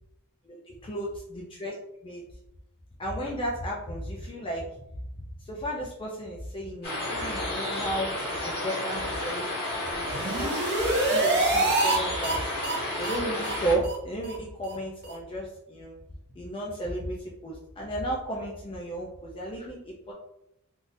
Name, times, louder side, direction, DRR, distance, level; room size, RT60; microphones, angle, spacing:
voice 1, 0.4-1.7 2.0-2.2 3.0-4.7 5.4-8.1 8.4-10.6 11.1-12.5 13.0-15.9 16.4-20.1, right 1 dB, 25° left, -3 dB, 0.5 m, -34 dB
sound 1, 6.8-13.8, left 1 dB, 50° left, 1.5 m, -32 dB
sound 2, 9.9-12.0 12.2-12.4 12.6-12.8 13.0-13.2 13.4-13.6 13.8-14.0 14.2-14.3 14.6-14.7 15.0-15.1, right 2 dB, 50° right, 0.6 m, -26 dB
3.6 x 2.5 x 2.6 m, 0.82 s
head